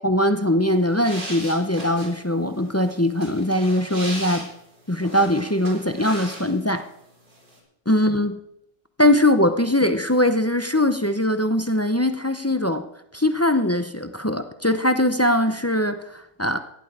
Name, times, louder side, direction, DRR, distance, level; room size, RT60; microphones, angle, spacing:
voice 1, 0.0-4.5 4.9-6.9 7.9-8.4 9.0-12.8 13.1-16.6, left 1 dB, 15° left, 8 dB, 0.5 m, -21 dB
sound 1, 0.7-6.8 7.1-7.6, right 1 dB, 80° right, 4.5 m, -38 dB
15.5 x 11.0 x 4.8 m, 0.78 s
omnidirectional pair, 1.5 m